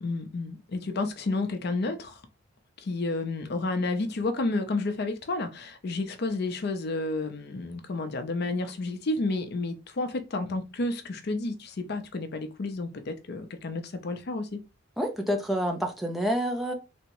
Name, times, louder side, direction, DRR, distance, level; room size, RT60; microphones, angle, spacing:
voice 1, 0.0-2.2 2.8-14.6, left 2 dB, 55° left, 0.5 m, -31 dB
voice 2, 15.0-16.7, equal, ahead, 0.4 m, -28 dB
3.5 x 2.0 x 2.9 m
head